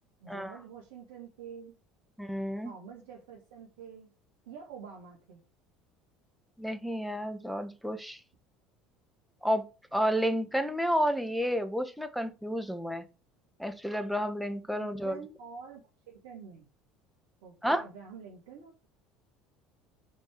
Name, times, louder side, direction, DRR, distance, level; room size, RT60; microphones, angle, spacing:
voice 1, 0.2-1.7 2.6-4.1 4.5-5.4 14.8-16.7 17.4-18.9, right 6 dB, 65° right, -1 dB, 2.0 m, -47 dB
voice 2, 2.2-2.7 6.6-8.2 9.4-9.6 9.9-13.0 13.6-15.2 17.6-17.8, equal, ahead, 9 dB, 1.5 m, -31 dB
6.6 x 5.2 x 6.2 m, 0.31 s
figure-of-eight pair, 65°, 0 cm